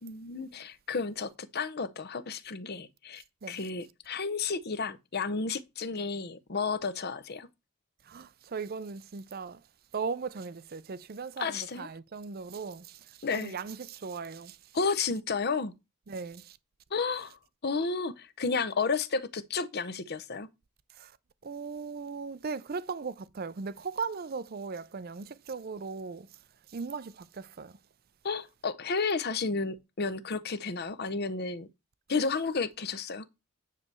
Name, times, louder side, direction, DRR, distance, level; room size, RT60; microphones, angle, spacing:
voice 1, 0.0-7.5 11.4-11.9 13.2-13.5 14.7-15.7 16.9-20.5 28.2-31.7 32.1-33.3, left 4 dB, 45° left, 0.7 m, -32 dB
voice 2, 8.0-9.7 9.9-14.8 16.1-16.6 20.9-21.2 21.4-26.4 26.7-27.8, right 5 dB, 45° right, 0.5 m, -38 dB
9.9 x 3.4 x 6.7 m
head